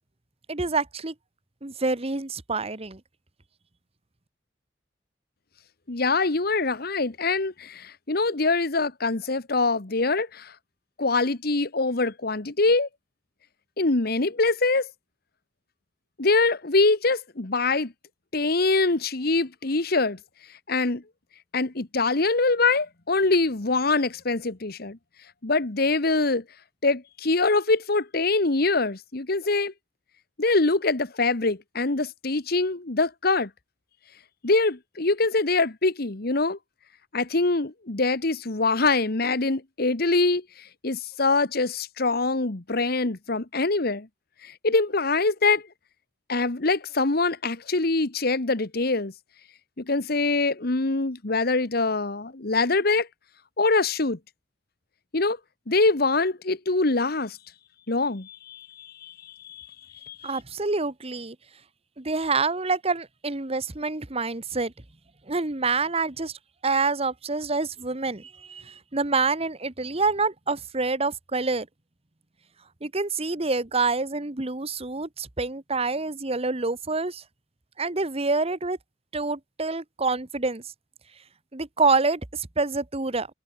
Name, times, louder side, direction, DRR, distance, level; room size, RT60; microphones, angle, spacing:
voice 1, 0.5-1.1 1.6-3.0 60.2-61.3 62.0-64.7 65.3-66.3 66.6-71.7 72.8-77.2 77.8-78.8 79.1-80.6 81.5-83.3, right 3 dB, 35° right, 1.4 m, -27 dB
voice 2, 5.9-10.5 11.0-12.9 13.8-14.9 16.2-17.9 18.3-20.2 20.7-21.0 21.5-25.0 25.4-26.4 26.8-29.7 30.4-33.5 34.4-36.6 37.1-40.4 40.8-44.1 44.4-45.6 46.3-49.1 49.8-53.1 53.6-54.2 55.1-55.4 55.7-57.4 57.9-59.7 60.0-60.3, left 3 dB, 55° left, 1.4 m, -24 dB
head